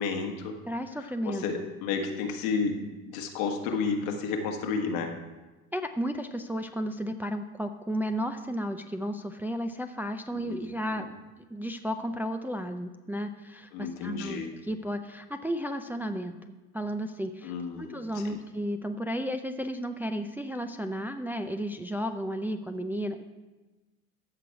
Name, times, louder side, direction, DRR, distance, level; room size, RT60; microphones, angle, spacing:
voice 1, 0.0-0.5 1.0-2.8 3.1-5.1 10.3-10.6 10.9-11.0 13.7-14.5 17.4-18.4, left 5 dB, 75° left, 3 dB, 1.6 m, -32 dB
voice 2, 0.7-1.7 5.7-11.1 11.4-16.4 16.7-17.5 17.8-23.2, equal, 5° right, 6 dB, 0.4 m, -33 dB
14.5 x 6.1 x 4.7 m, 1.2 s
hypercardioid pair, 80°, 43 cm